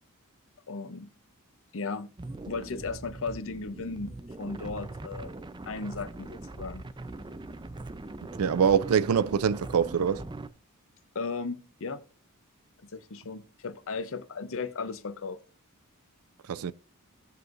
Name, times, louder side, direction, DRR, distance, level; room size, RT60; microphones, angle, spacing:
voice 1, 0.7-1.1 1.7-2.1 2.5-5.3 5.7-6.8 11.1-12.0 12.8-15.4, left 4 dB, 65° left, 0.8 m, -36 dB
sound 1, 2.2-10.5, right 2 dB, 20° right, 0.6 m, -41 dB
voice 2, 8.4-10.2 16.5-16.7, right 7 dB, 75° right, 0.4 m, -24 dB
17.0 x 6.2 x 2.6 m
head